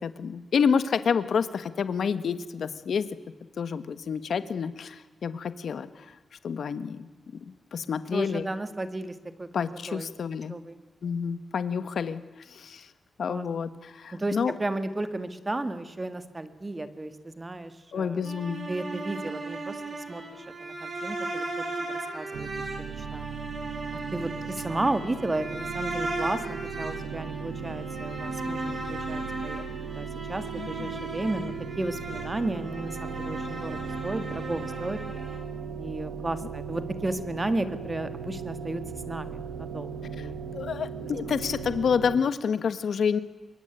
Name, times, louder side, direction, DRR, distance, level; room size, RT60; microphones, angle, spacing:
voice 1, 0.0-3.1 3.6-6.2 6.4-7.1 7.4-8.4 9.5-10.6 11.0-12.9 13.2-14.5 17.9-18.7 30.6-30.9 40.2-40.3 40.5-43.2, left 6 dB, 60° left, 13 dB, 1.5 m, -29 dB
voice 2, 8.1-9.5 9.9-10.1 10.5-10.8 13.3-13.4 14.1-18.2 18.7-21.4 22.1-22.5 22.8-23.3 24.1-29.6 29.9-35.0 35.8-40.4, right 2 dB, 20° right, 11 dB, 1.8 m, -33 dB
sound 1, 18.2-35.4, right 2 dB, 35° right, 5.7 m, -36 dB
sound 2, 22.3-42.2, right 6 dB, 80° right, 1.3 m, -38 dB
26.5 x 23.5 x 9.2 m, 1.2 s
wide cardioid pair, 160°, 0 cm